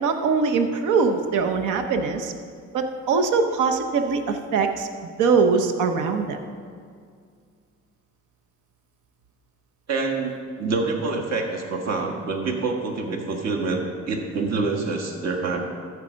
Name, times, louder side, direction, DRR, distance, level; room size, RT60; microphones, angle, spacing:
voice 1, 0.0-2.3 2.7-4.9 5.2-6.4, right 5 dB, 85° right, 6 dB, 0.8 m, -22 dB
voice 2, 9.9-10.3 10.6-15.6, right 3 dB, 60° right, 1 dB, 1.5 m, -26 dB
13.5 x 4.8 x 6.3 m, 2.1 s
cardioid pair, 90°, 30 cm